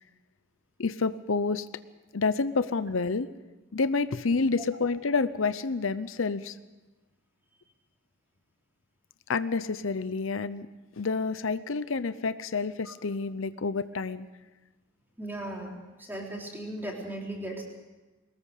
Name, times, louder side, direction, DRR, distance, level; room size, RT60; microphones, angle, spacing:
voice 1, 0.8-1.7 2.1-3.3 3.7-6.6 9.3-10.7 11.0-14.3, left 4 dB, 80° left, 14 dB, 0.7 m, -28 dB
voice 2, 15.2-17.6, right 1 dB, 10° right, -1 dB, 3.9 m, -37 dB
22.5 x 19.0 x 6.6 m, 1.1 s
head